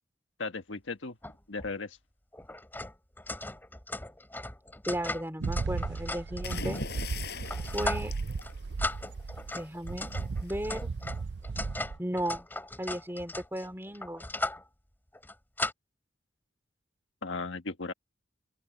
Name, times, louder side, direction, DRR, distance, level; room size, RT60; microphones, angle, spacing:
voice 1, 0.4-1.2 1.5-2.0 17.2-17.9, left 3 dB, 90° left, 1.5 m, -36 dB
sound 1, 1.2-1.3 1.6-1.7 2.3-7.0 7.5-8.1 8.4-8.5 8.8-14.6 15.1-15.7, left 2 dB, 10° left, 2.6 m, -38 dB
voice 2, 4.9-6.8 7.7-8.1 9.5-10.1 10.4-10.9 12.0-12.5 12.8-14.2, equal, 10° right, 2.9 m, -35 dB
sound 2, 5.4-9.6 9.8-12.0, right 4 dB, 65° right, 0.5 m, -35 dB
sound 3, 6.4-9.2 10.4-10.7, left 3 dB, 55° left, 6.1 m, -40 dB
open air
head